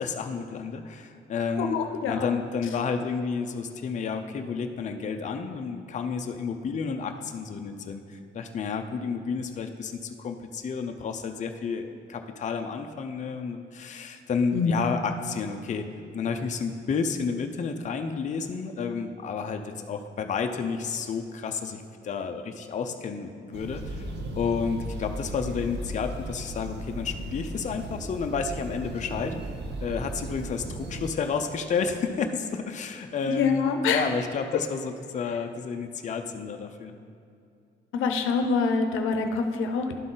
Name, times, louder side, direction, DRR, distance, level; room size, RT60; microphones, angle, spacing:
voice 1, 0.0-1.8 2.1-15.8 16.1-24.1 24.4-29.3 29.8-33.6 33.9-36.9, left 5 dB, 40° left, 5 dB, 0.5 m, -31 dB
voice 2, 1.6-2.3 14.5-14.7 33.3-34.1 34.5-34.6 37.9-40.0, left 5 dB, 80° left, 6 dB, 0.6 m, -25 dB
sound 1, 23.5-31.1, right 1 dB, 60° right, 0.8 m, -36 dB
11.5 x 3.9 x 3.8 m, 2.5 s
cardioid pair, 90°, 20 cm